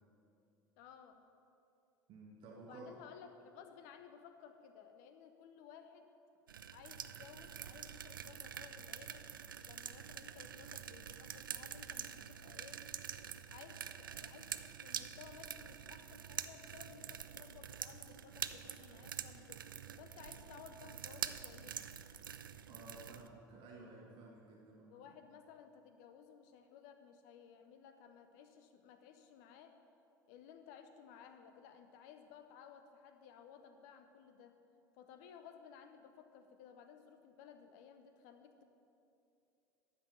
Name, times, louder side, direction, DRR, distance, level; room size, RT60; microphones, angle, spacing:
voice 1, 0.8-1.2 2.5-6.1 6.7-9.3 9.6-12.9 13.5-19.6 20.0-21.8 24.9-29.8 30.3-34.6 34.9-38.6, left 7 dB, 55° left, 8 dB, 0.9 m, -57 dB
voice 2, 2.1-2.9 22.7-25.1, right 3 dB, 45° right, -1 dB, 1.5 m, -54 dB
sound 1, 6.5-23.3, right 8 dB, 75° right, 0.4 m, -46 dB
12.5 x 6.1 x 6.7 m, 2.8 s
figure-of-eight pair, 65°, 11 cm